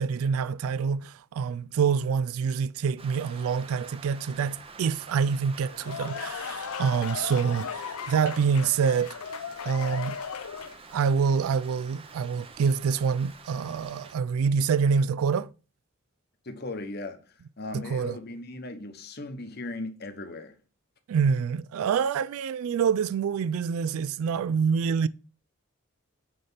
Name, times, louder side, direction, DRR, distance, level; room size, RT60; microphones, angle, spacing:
voice 1, 0.0-9.2 9.7-10.2 10.9-15.5 17.7-18.2 21.1-25.1, right 6 dB, 75° right, 0.3 m, -26 dB
Rain, 3.0-14.1, right 4 dB, 25° right, 0.6 m, -48 dB
sound 1, 5.6-10.9, left 6 dB, 80° left, 0.6 m, -36 dB
voice 2, 16.4-20.6, left 2 dB, 45° left, 1.1 m, -38 dB
9.5 x 3.4 x 5.6 m
head